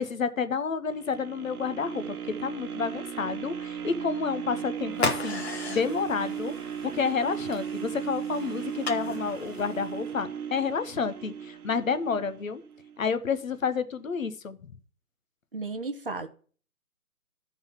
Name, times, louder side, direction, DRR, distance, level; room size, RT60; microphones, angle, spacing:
voice 1, 0.0-6.5 6.8-12.6 13.0-14.6, left 5 dB, 60° left, 0.9 m, -30 dB
sound 1, 0.9-13.0 13.5-13.6, right 8 dB, 75° right, 0.9 m, -36 dB
sound 2, 4.9-10.1, left 3 dB, 45° left, 1.3 m, -36 dB
voice 2, 15.5-16.3, right 3 dB, 40° right, 0.6 m, -34 dB
11.5 x 4.0 x 5.6 m
hypercardioid pair, 165°, 44 cm